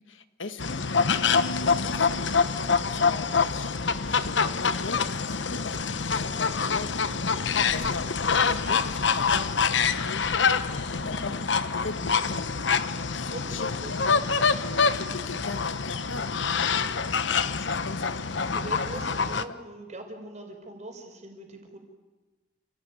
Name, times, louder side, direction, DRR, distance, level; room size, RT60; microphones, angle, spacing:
voice 1, 0.1-0.9 1.7-6.9 7.7-10.2 10.9-11.5 11.7-14.1 14.6-17.1 17.5-18.2 19.3-19.6, left 3 dB, 90° left, 9 dB, 1.7 m, -40 dB
sound 1, 0.6-19.4, left 5 dB, 65° left, 1.0 m, -26 dB
voice 2, 13.2-14.2 18.5-21.8, right 1 dB, 40° right, 3 dB, 5.3 m, -42 dB
29.0 x 17.5 x 9.5 m, 1.2 s
head